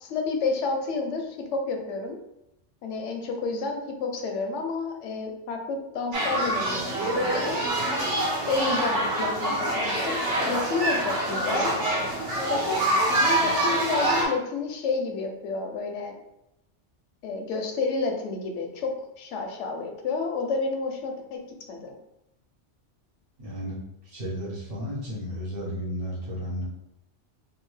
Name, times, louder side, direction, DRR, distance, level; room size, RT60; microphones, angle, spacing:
voice 1, 0.0-2.2 2.8-7.6 8.5-11.8 12.5-12.8 13.1-16.2 17.2-21.4 21.7-21.9, left 4 dB, 85° left, 3 dB, 0.9 m, -30 dB
sound 1, 6.1-14.3, right 1 dB, 80° right, 1.1 m, -25 dB
voice 2, 23.4-26.6, equal, 55° right, -5 dB, 1.2 m, -33 dB
2.8 x 2.3 x 3.1 m, 0.84 s
omnidirectional pair, 1.2 m